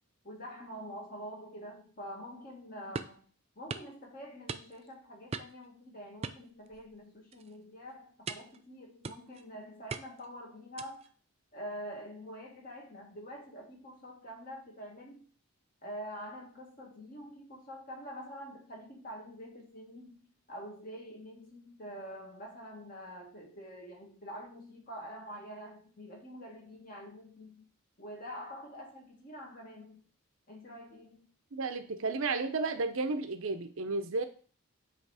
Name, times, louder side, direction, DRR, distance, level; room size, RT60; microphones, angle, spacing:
voice 1, 0.2-3.2 3.6-11.1 11.5-15.3 15.8-27.7 28.0-30.0 30.5-31.3, equal, 40° left, -1 dB, 1.9 m, -46 dB
sound 1, 2.9-3.2 3.7-3.9 4.5-4.9 5.3-5.7 6.2-7.0 7.3-7.6 8.3-8.6 9.0-9.4 9.9-10.3 10.8-11.1, right 5 dB, 30° right, 0.3 m, -40 dB
voice 2, 31.5-34.2, right 3 dB, 70° right, 9 dB, 0.7 m, -32 dB
8.1 x 3.1 x 4.8 m, 0.41 s
head